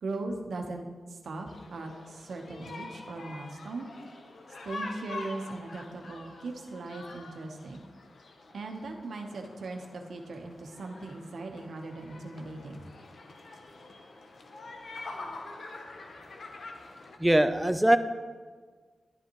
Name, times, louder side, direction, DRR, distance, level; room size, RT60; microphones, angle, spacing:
voice 1, 0.0-3.9 4.6-7.8 8.5-12.8, right 2 dB, 75° right, 3 dB, 1.1 m, -39 dB
sound 1, 1.5-17.2, left 2 dB, 70° left, 1.0 m, -45 dB
voice 2, 17.2-18.0, right 1 dB, 10° right, 10 dB, 0.6 m, -22 dB
11.0 x 10.0 x 3.1 m, 1.5 s
cardioid pair, 70°, 0 cm